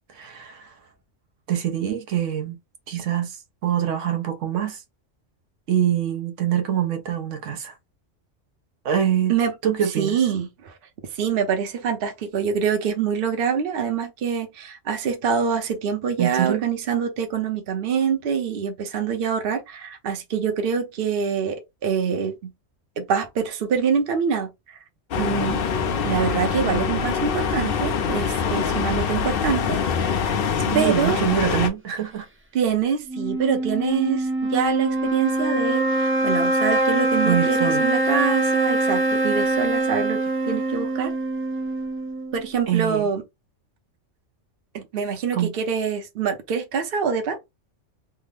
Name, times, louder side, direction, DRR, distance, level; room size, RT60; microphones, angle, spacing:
voice 1, 0.1-0.7 1.5-2.6 2.9-4.8 5.7-7.7 8.8-9.3 9.6-10.2 16.2-16.6 30.6-32.3 37.2-37.9 42.7-43.1 45.3-45.5, right 10 dB, 80° right, 1.1 m, -24 dB
voice 2, 9.8-10.7 11.1-22.5 23.0-24.8 25.2-25.6 26.0-30.2 30.7-31.2 32.5-40.2 40.5-41.1 42.3-43.2 44.7-47.4, right 6 dB, 55° right, 0.9 m, -25 dB
sound 1, 25.1-31.7, left 6 dB, 60° left, 0.7 m, -24 dB
sound 2, 33.1-42.5, right 2 dB, 20° right, 0.3 m, -23 dB
3.3 x 2.0 x 3.4 m
omnidirectional pair, 1.3 m